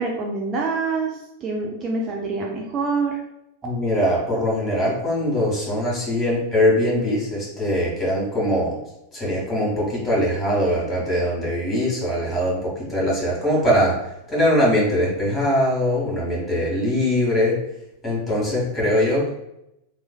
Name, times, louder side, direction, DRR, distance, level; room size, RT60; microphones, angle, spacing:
voice 1, 0.0-3.2, right 4 dB, 30° right, -1 dB, 0.4 m, -26 dB
voice 2, 3.6-8.8 9.1-17.6 18.0-19.3, equal, 20° left, -5 dB, 1.5 m, -22 dB
3.0 x 2.6 x 2.2 m, 0.84 s
figure-of-eight pair, 90°, 0 cm